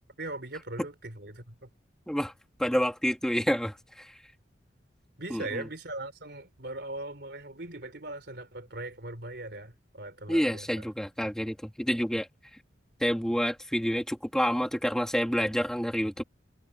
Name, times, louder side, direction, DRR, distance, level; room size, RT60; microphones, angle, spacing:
voice 1, 0.2-1.7 5.2-10.9, right 2 dB, 60° right, 4.1 m, -40 dB
voice 2, 2.6-4.2 5.3-5.6 10.3-12.3 13.0-16.2, equal, 5° left, 2.9 m, -28 dB
head